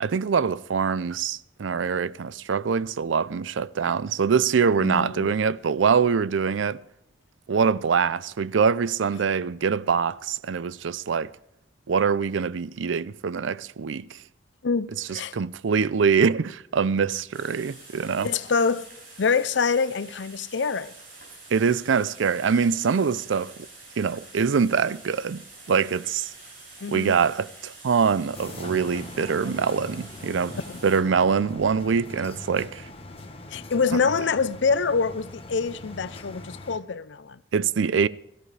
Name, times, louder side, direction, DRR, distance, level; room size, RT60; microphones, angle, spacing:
voice 1, 0.0-6.8 7.5-11.3 11.9-14.2 15.1-18.3 21.5-23.5 24.0-25.4 25.7-26.3 26.9-32.9 37.5-38.1, right 6 dB, 85° right, 0.5 m, -24 dB
voice 2, 4.8-5.3 14.6-15.4 18.2-18.9 19.2-20.9 26.8-27.2 30.6-30.8 33.5-37.4, left 5 dB, 70° left, 0.6 m, -25 dB
sound 1, 17.3-31.0, right 2 dB, 50° right, 6.1 m, -47 dB
sound 2, 28.3-36.8, left 2 dB, 30° left, 1.3 m, -42 dB
17.5 x 14.5 x 3.3 m
head